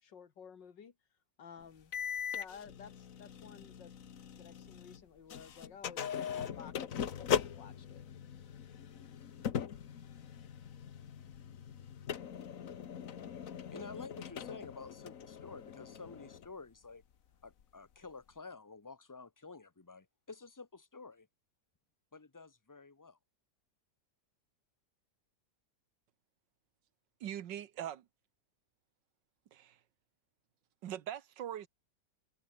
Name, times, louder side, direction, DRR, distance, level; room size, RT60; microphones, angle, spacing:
voice 1, 0.0-0.9 1.4-1.9 2.3-3.9 4.4-8.0, left 7 dB, 85° left, 2.6 m, -54 dB
sound 1, 1.9-5.0 5.3-16.5, left 8 dB, 55° left, 1.4 m, -40 dB
voice 2, 13.7-17.0 17.4-21.3 22.1-23.2, left 4 dB, 15° left, 0.9 m, -50 dB
voice 3, 27.2-28.1 29.5-29.8 30.8-31.7, right 10 dB, 85° right, 1.7 m, -41 dB
omnidirectional pair, 1.9 m